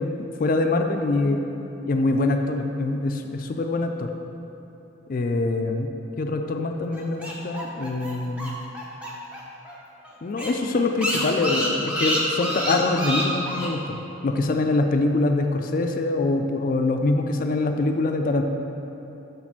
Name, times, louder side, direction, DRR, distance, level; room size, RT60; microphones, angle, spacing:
voice 1, 0.0-1.4 1.9-4.1 5.1-5.9 6.2-8.5 10.2-14.0 14.2-18.4, left 2 dB, 45° left, 5 dB, 0.4 m, -24 dB
sound 1, 6.9-9.4 9.7-9.8 10.0-10.1 10.4-13.7, equal, 5° right, 0.7 m, -28 dB
6.9 x 4.1 x 5.9 m, 3.0 s
head